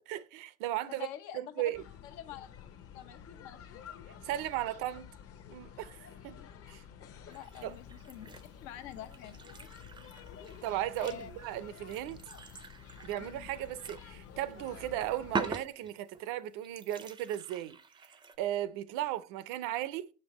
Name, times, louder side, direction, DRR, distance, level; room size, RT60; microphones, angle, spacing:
voice 1, 0.1-1.1 1.3-1.8 4.2-5.1 5.5-6.4 6.7-6.8 7.6-7.8 10.6-12.2 13.0-17.8 18.4-20.1, right 13 dB, 70° right, 0.6 m, -36 dB
voice 2, 0.9-1.7 2.0-2.5 2.9-3.9 6.3-6.5 7.3-8.3 8.6-9.4 11.0-11.3 13.2-13.5, left 10 dB, 90° left, 0.9 m, -47 dB
sound 1, 1.7-15.6, left 8 dB, 45° left, 0.7 m, -51 dB
sound 2, 7.3-8.5 8.9-14.1 14.4-14.5 15.3-16.2 16.6-18.4, right 4 dB, 15° right, 0.4 m, -43 dB
6.1 x 5.4 x 3.0 m
cardioid pair, 130°, 33 cm